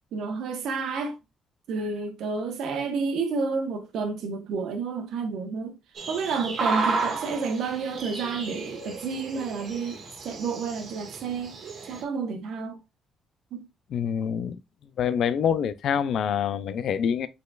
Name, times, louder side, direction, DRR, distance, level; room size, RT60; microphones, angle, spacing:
voice 1, 0.1-1.2 1.7-5.8 6.1-11.6 11.9-12.8 13.5-13.7, right 4 dB, 80° right, 1.1 m, -30 dB
sound 1, 6.0-12.0, right 3 dB, 60° right, 1.6 m, -33 dB
voice 2, 13.9-14.6 15.0-17.3, left 8 dB, 70° left, 0.5 m, -26 dB
5.3 x 4.1 x 2.4 m
cardioid pair, 90°, 0 cm